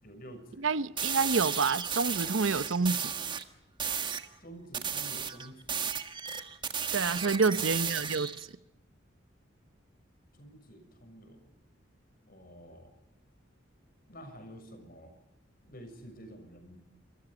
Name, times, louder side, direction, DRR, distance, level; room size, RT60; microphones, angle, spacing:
voice 1, 0.0-0.8 4.4-5.8 7.2-7.7 10.4-11.4 12.2-12.9 14.1-15.1 15.6-16.8, equal, 45° left, 6.7 m, -50 dB
voice 2, 0.6-3.1 6.9-8.3, right 4 dB, 80° right, 0.8 m, -28 dB
sound 1, 1.0-3.4 3.8-4.3 4.7-8.4, right 7 dB, 25° right, 1.5 m, -34 dB
27.5 x 25.5 x 5.1 m
head